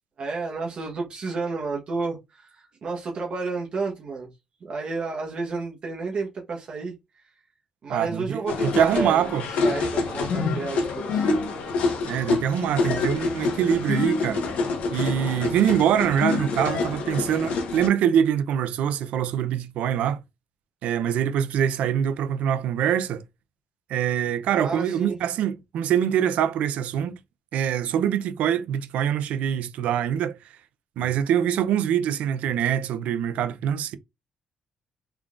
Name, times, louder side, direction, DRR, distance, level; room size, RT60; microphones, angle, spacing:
voice 1, 0.2-4.3 4.6-7.2 7.8-11.4 24.5-25.2, right 3 dB, 45° right, 1.0 m, -31 dB
voice 2, 7.9-9.4 12.0-14.4 14.9-20.2 20.8-23.2 23.9-27.2 27.5-30.4 31.0-34.0, right 9 dB, 85° right, 0.5 m, -24 dB
sound 1, 8.5-17.9, left 4 dB, 75° left, 1.0 m, -27 dB
3.7 x 3.4 x 2.4 m
cardioid pair, 120°, 2 cm